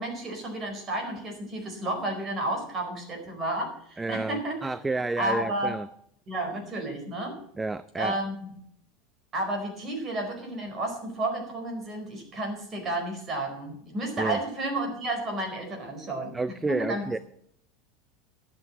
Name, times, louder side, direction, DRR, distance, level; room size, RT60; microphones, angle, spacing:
voice 1, 0.0-4.7 5.2-5.8 6.3-7.3 8.0-8.5 9.3-16.3 16.7-17.1, right 1 dB, 30° right, 3 dB, 4.5 m, -31 dB
voice 2, 4.0-5.9 7.6-8.2 14.2-14.4 16.3-17.2, right 3 dB, 10° right, 15 dB, 0.4 m, -30 dB
11.5 x 7.9 x 7.3 m, 0.69 s
supercardioid pair, 135°, 0 cm